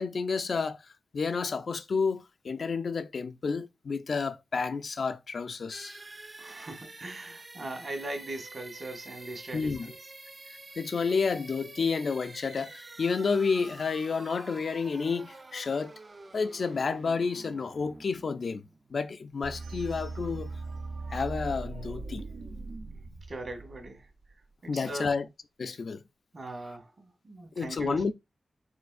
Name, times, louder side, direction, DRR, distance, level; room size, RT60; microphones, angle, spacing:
voice 1, 0.0-6.0 9.5-9.9 10.5-15.9 16.3-18.6 18.9-20.5 21.1-22.2 24.7-25.3 25.6-26.0 27.6-28.1, left 5 dB, 70° left, 0.4 m, -30 dB
sound 1, 5.7-19.4, right 2 dB, 40° right, 0.4 m, -48 dB
voice 2, 6.4-9.9 23.3-24.1 24.6-25.1 26.3-28.1, right 1 dB, 55° right, 1.8 m, -39 dB
sound 2, 19.4-24.3, right 3 dB, 80° right, 0.6 m, -39 dB
4.5 x 4.0 x 2.5 m
wide cardioid pair, 75°, 0 cm